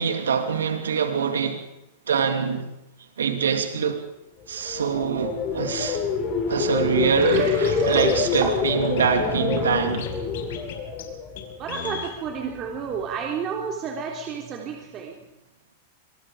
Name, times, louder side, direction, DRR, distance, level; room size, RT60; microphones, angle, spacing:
voice 1, 0.0-1.6 2.1-2.7 3.2-4.0 4.5-6.0 6.5-10.1, right 7 dB, 85° right, 6 dB, 2.7 m, -24 dB
sound 1, 4.6-11.7 12.1-12.5, left 4 dB, 40° left, 5.4 m, -26 dB
Water, 7.2-10.1, right 7 dB, 65° right, 7.5 m, -33 dB
Scratching (performance technique), 7.3-7.4 7.6-8.4 8.6-8.7 9.0-10.1 10.3-10.7 11.0-11.1 11.4-11.5 11.7-12.1, left 10 dB, 70° left, 4.9 m, -36 dB
voice 2, 11.6-15.2, right 6 dB, 35° right, 1 dB, 3.6 m, -31 dB
26.5 x 20.5 x 5.0 m, 0.87 s
hypercardioid pair, 110°, 0 cm